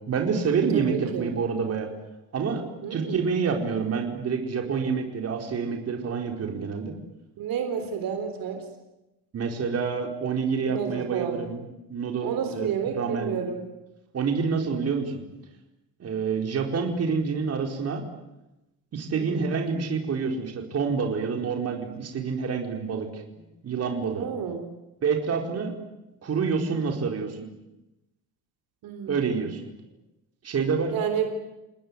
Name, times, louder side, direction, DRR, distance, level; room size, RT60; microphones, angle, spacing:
voice 1, 0.0-1.9 2.3-2.6 2.9-6.9 9.3-11.6 11.9-12.7 12.9-13.4 14.1-15.2 16.0-18.0 18.9-24.3 25.0-25.7 26.2-27.4 29.1-29.6 30.4-31.2, right 5 dB, 40° right, 2 dB, 4.5 m, -27 dB
voice 2, 0.7-1.3 2.8-3.3 7.4-8.6 10.6-11.4 12.2-13.6 19.1-19.5 24.2-24.6 28.8-29.4 30.9-31.3, right 7 dB, 65° right, 6 dB, 4.0 m, -31 dB
29.0 x 19.5 x 9.7 m, 0.96 s
cardioid pair, 155°, 37 cm